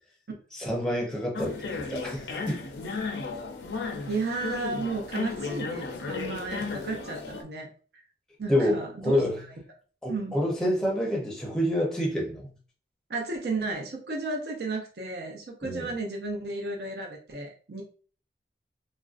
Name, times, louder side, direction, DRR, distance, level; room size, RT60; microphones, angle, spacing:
voice 1, 0.5-2.6 8.5-9.4 10.0-12.5 15.6-15.9, left 1 dB, 5° left, 0.6 m, -28 dB
sound 1, 1.3-7.4, left 4 dB, 90° left, 0.5 m, -34 dB
voice 2, 3.8-7.7 8.4-9.2 10.1-10.4 13.1-17.8, right 3 dB, 65° right, 0.6 m, -33 dB
3.0 x 2.5 x 2.4 m
head